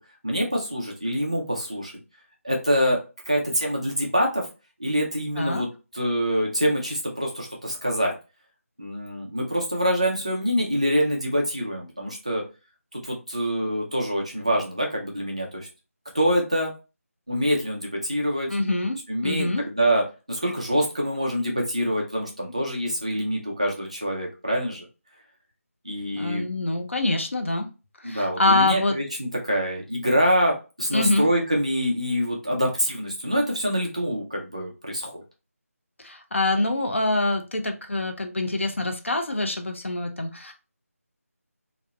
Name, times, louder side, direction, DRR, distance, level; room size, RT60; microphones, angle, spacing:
voice 1, 0.2-2.0 2.4-3.0 3.3-4.4 4.8-8.1 8.8-12.4 12.9-15.7 16.1-16.7 17.3-18.6 19.1-24.8 25.8-26.4 28.0-35.2, equal, 25° right, -1 dB, 0.4 m, -25 dB
voice 2, 18.5-19.0 19.2-19.6 26.1-27.7 28.0-28.9 30.9-31.2 36.0-40.5, left 2 dB, 50° left, 5 dB, 0.4 m, -25 dB
2.8 x 2.0 x 2.2 m, 0.30 s
figure-of-eight pair, 180°, 8 cm